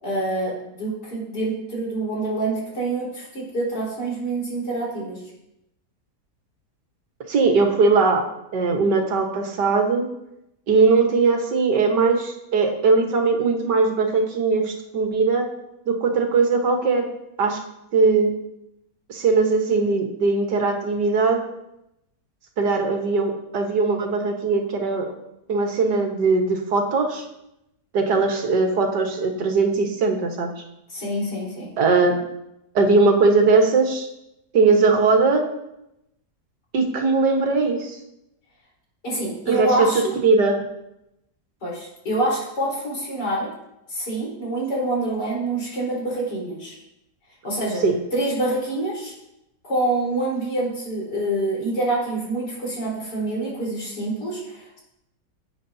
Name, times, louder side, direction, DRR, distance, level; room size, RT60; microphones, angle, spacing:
voice 1, 0.0-5.2 30.9-31.7 39.0-40.0 41.6-43.5 43.9-46.8 47.4-47.8 48.1-49.1 49.6-54.8, right 2 dB, 85° left, -5 dB, 4.9 m, -26 dB
voice 2, 7.3-8.2 8.5-10.1 10.7-15.4 15.9-17.1 17.4-17.6 17.9-18.3 19.1-21.4 22.6-25.1 25.5-27.2 27.9-30.5 31.8-32.2 32.8-34.1 34.5-35.5 36.7-38.0 39.5-39.9 40.2-40.6 47.8-48.0, right 4 dB, 90° right, 3 dB, 2.0 m, -20 dB
17.0 x 8.6 x 2.8 m, 0.86 s
omnidirectional pair, 1.8 m